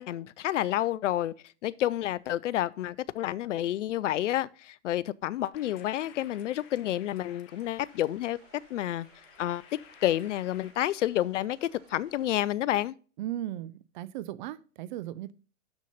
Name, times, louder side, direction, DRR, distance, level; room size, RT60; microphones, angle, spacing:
voice 1, 0.0-1.3 1.6-8.4 8.7-9.1 9.4-9.6 10.0-12.9, left 13 dB, 75° left, 0.6 m, -29 dB
sound 1, 5.5-10.7, left 8 dB, 45° left, 1.3 m, -55 dB
sound 2, 7.5-12.5, right 4 dB, 80° right, 3.7 m, -61 dB
voice 2, 13.2-15.3, right 13 dB, 40° right, 0.5 m, -37 dB
7.2 x 6.3 x 5.4 m
hypercardioid pair, 130°, 37 cm